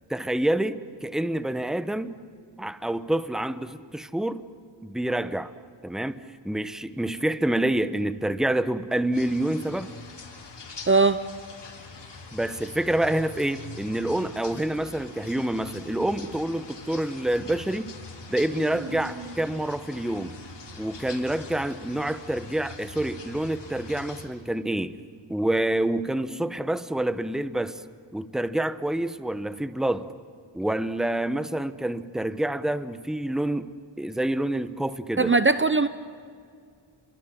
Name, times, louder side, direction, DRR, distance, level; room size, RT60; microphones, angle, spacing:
voice 1, 0.1-2.2 2.6-4.5 4.8-5.5 5.8-9.9 12.3-17.9 18.3-20.4 20.8-25.0 25.3-27.8 28.1-30.1 30.5-33.7 34.0-35.3, right 1 dB, ahead, 12 dB, 0.9 m, -27 dB
sound 1, 9.1-24.2, left 4 dB, 60° left, 4.0 m, -43 dB
voice 2, 10.9-11.2 35.2-35.9, right 3 dB, 25° right, 12 dB, 0.7 m, -19 dB
Human voice, 16.3-17.2 18.4-21.1, right 4 dB, 65° right, 3.0 m, -44 dB
30.0 x 24.0 x 7.7 m, 2.2 s
wide cardioid pair, 95°, 48 cm